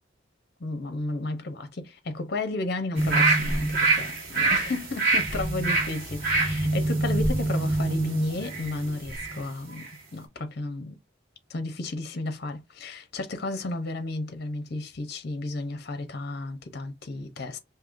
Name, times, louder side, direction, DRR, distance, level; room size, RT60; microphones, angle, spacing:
voice 1, 0.6-9.9 10.1-10.9 11.5-17.6, left 2 dB, 55° left, 0.7 m, -33 dB
sound 1, 2.9-9.4 9.8-9.9, right 3 dB, 50° right, 1.6 m, -25 dB
5.4 x 2.8 x 2.5 m
head